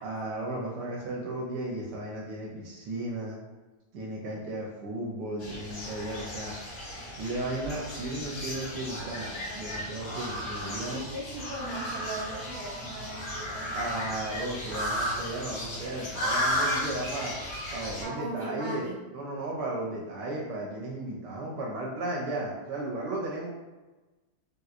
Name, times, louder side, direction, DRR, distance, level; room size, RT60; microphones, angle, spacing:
voice 1, 0.0-3.4 3.9-6.5 7.0-11.0 13.7-17.3 17.7-23.5, right 1 dB, 85° right, -3 dB, 1.2 m, -35 dB
sound 1, 5.4-18.0, equal, 75° left, 1.7 m, -34 dB
voice 2, 10.9-13.7 18.0-19.0, right 1 dB, 70° right, -5 dB, 1.0 m, -38 dB
3.5 x 2.8 x 2.4 m, 1.2 s
omnidirectional pair, 1.8 m